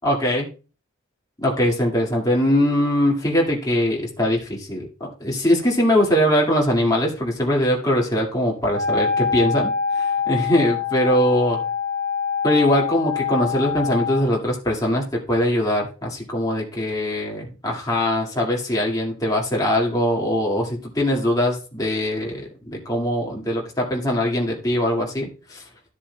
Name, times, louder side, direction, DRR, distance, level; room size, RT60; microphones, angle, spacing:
voice 1, 0.0-0.5 1.4-11.6 12.4-25.6, equal, 20° left, -2 dB, 2.1 m, -22 dB
Wind instrument woodwind instrument, 8.6-14.2, left 6 dB, 35° right, 5.3 m, -25 dB
13.5 x 7.3 x 2.3 m, 0.35 s
head